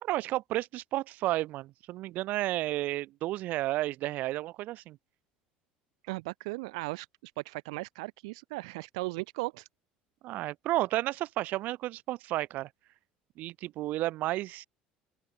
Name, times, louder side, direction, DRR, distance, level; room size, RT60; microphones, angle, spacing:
voice 1, 0.0-5.0 10.2-12.7 13.4-14.6, right 16 dB, 60° right, 1.2 m, -32 dB
voice 2, 6.0-9.7, right 25 dB, 90° right, 0.9 m, -37 dB
open air
supercardioid pair, 110°, 3 cm